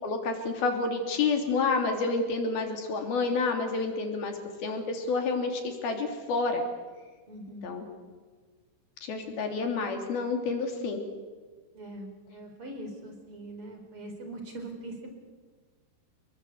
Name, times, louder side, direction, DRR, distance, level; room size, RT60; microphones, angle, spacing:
voice 1, 0.0-6.6 7.6-7.9 9.0-11.0, left 4 dB, 60° left, 4 dB, 4.9 m, -29 dB
voice 2, 7.3-7.7 11.7-15.2, right 1 dB, 30° right, 4 dB, 5.1 m, -42 dB
29.0 x 21.0 x 8.4 m, 1.4 s
omnidirectional pair, 5.0 m